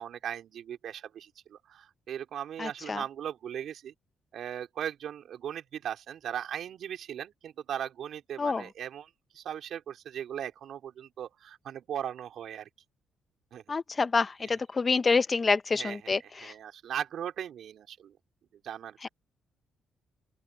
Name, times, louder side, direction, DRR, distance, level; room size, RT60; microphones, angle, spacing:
voice 1, 0.0-3.9 4.3-12.7 13.5-13.6 14.4-14.5 15.7-18.1 18.5-19.1, right 9 dB, 70° right, 4.1 m, -38 dB
voice 2, 2.6-3.0 8.4-8.6 13.7-16.5 19.0-19.1, left 4 dB, 35° left, 1.1 m, -27 dB
open air
cardioid pair, 80°, 0 cm